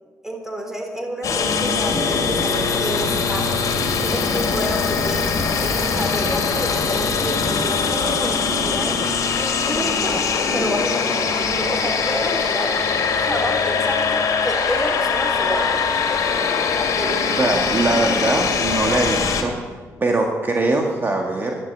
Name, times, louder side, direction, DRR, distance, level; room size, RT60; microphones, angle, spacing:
voice 1, 0.2-3.5 3.9-5.3 5.6-9.0 9.4-10.2 10.5-15.8 16.8-17.5, equal, 5° right, 2 dB, 4.0 m, -29 dB
sound 1, 1.2-19.4, left 5 dB, 70° left, 2.4 m, -22 dB
voice 2, 17.4-19.5 20.0-21.6, right 2 dB, 35° right, 1 dB, 1.9 m, -21 dB
11.5 x 11.5 x 8.3 m, 1.4 s
cardioid pair, 70°, 6 cm